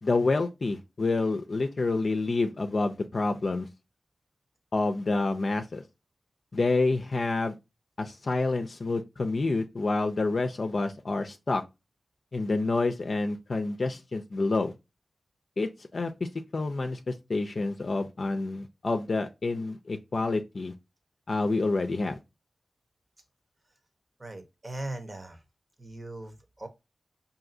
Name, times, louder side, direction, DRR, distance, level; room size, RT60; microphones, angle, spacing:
voice 1, 0.0-3.7 4.7-5.8 6.5-7.5 8.0-11.6 12.3-14.7 15.6-20.7 21.3-22.2, left 3 dB, 60° left, 0.5 m, -28 dB
voice 2, 24.2-25.4 25.8-26.7, right 1 dB, 35° right, 1.0 m, -39 dB
4.8 x 2.7 x 2.6 m
cardioid pair, 60°, 0 cm